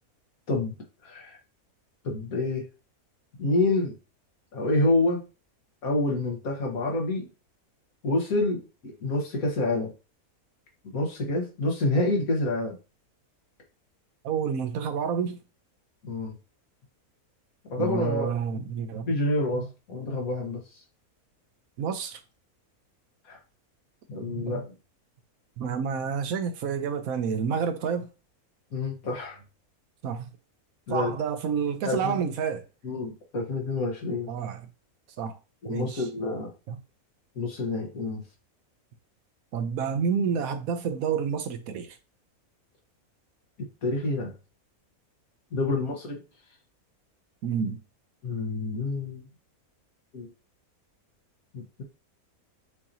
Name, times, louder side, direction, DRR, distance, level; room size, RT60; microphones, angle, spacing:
voice 1, 1.0-1.4 2.0-2.7 3.4-3.9 4.5-5.2 5.8-7.3 8.0-9.9 10.9-12.8 16.0-16.4 17.7-18.3 19.1-20.6 23.3-23.4 24.1-24.7 28.7-29.4 30.9-31.1 31.8-32.2 32.8-34.3 35.6-36.5 37.4-38.2 43.8-44.3 45.5-46.2 48.2-49.2 50.1-50.3 51.5-51.8, left 2 dB, 70° left, 1.8 m, -28 dB
voice 2, 14.2-15.4 17.8-19.2 19.5-19.7 21.8-22.2 24.3-24.6 25.6-28.1 30.0-30.3 30.9-32.6 34.3-34.6 35.2-35.4 35.7-36.1 36.7-36.8 39.5-42.0 47.4-47.8, right 6 dB, 75° right, 1.1 m, -29 dB
6.4 x 2.9 x 2.7 m
omnidirectional pair, 1.6 m